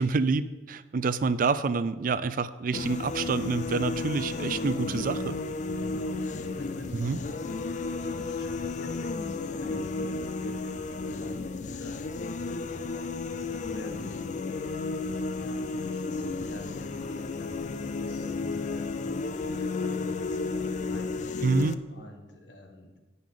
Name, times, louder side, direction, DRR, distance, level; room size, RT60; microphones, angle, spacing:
voice 1, 0.0-5.3 6.9-7.2 21.4-21.8, right 4 dB, 50° right, 14 dB, 0.4 m, -27 dB
sound 1, 2.7-21.8, left 3 dB, 45° left, 0.4 m, -33 dB
voice 2, 5.7-15.1 15.4-19.1 19.4-21.4 21.9-23.0, left 1 dB, 85° left, 3 dB, 1.4 m, -48 dB
14.0 x 5.4 x 3.7 m, 1.2 s
head